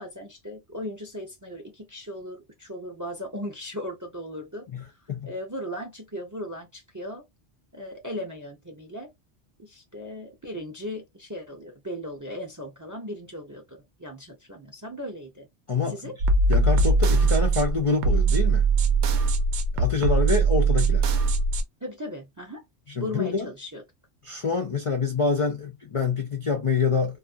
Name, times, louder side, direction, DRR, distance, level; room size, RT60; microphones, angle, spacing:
voice 1, 0.0-5.0 5.2-7.3 7.7-9.1 9.6-15.5 15.9-16.1 21.8-22.6 23.0-23.8, equal, 25° right, 0.4 m, -37 dB
voice 2, 4.7-5.3 15.7-16.0 16.5-18.7 19.7-21.1 23.0-23.5 24.2-27.2, left 5 dB, 55° left, 0.3 m, -26 dB
sound 1, 16.2-21.6, right 3 dB, 75° right, 0.8 m, -21 dB
2.5 x 2.4 x 2.4 m
omnidirectional pair, 1.2 m